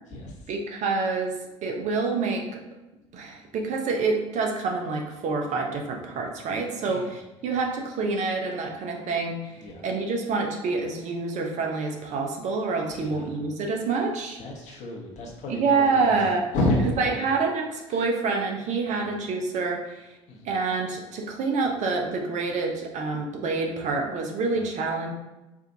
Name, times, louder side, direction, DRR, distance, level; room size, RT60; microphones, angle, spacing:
voice 1, 0.5-1.3 1.6-2.6 3.1-9.6 9.8-14.4 15.5-16.4 17.0-20.1 20.4-25.1, right 4 dB, 50° right, 2 dB, 0.8 m, -27 dB
voice 2, 13.0-13.4 14.4-15.8 16.0-16.2 16.5-16.8 17.1-17.3 17.9-18.0 18.9-19.1 20.3-20.5 24.4-24.6, left 2 dB, 50° left, -1 dB, 1.2 m, -30 dB
4.8 x 2.5 x 2.7 m, 1.0 s
hypercardioid pair, 65°, 15 cm